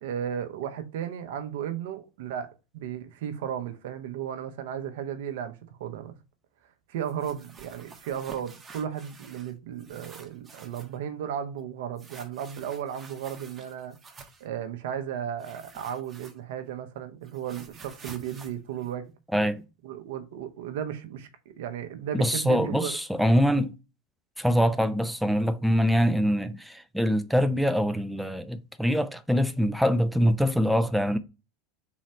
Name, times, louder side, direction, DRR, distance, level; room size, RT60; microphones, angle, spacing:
voice 1, 0.0-6.1 6.9-14.0 14.4-19.1 19.8-23.0 23.3-23.4, right 9 dB, 75° right, 0.7 m, -35 dB
sound 1, 7.0-9.5 9.8-11.0 12.0-14.5 15.4-16.7 17.0-19.6, right 4 dB, 25° right, 0.9 m, -49 dB
voice 2, 22.1-23.7 24.4-31.2, equal, ahead, 0.4 m, -24 dB
3.9 x 3.1 x 4.3 m
hypercardioid pair, 95°, 0 cm